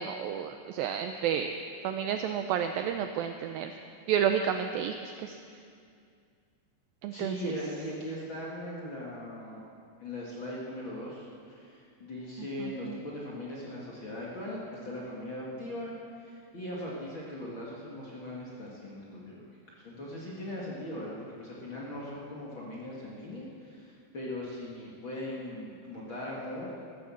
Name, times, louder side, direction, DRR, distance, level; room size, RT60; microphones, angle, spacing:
voice 1, 0.0-1.5 1.8-3.7 4.1-5.4 7.0-7.3 12.6-13.0, right 8 dB, 85° right, 7 dB, 2.1 m, -31 dB
voice 2, 7.1-9.6 10.0-26.7, left 1 dB, 40° left, -5 dB, 2.0 m, -39 dB
14.0 x 13.5 x 7.1 m, 2.3 s
omnidirectional pair, 4.7 m